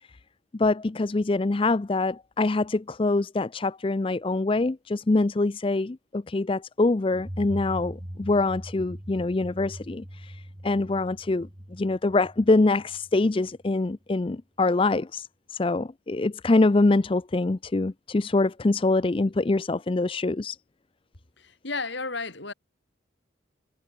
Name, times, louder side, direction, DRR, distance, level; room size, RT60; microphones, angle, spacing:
voice 1, 0.5-20.6, left 2 dB, 25° left, 0.4 m, -24 dB
sound 1, 7.1-13.7, equal, 20° right, 2.5 m, -41 dB
voice 2, 21.4-22.5, left 3 dB, 60° left, 4.2 m, -33 dB
head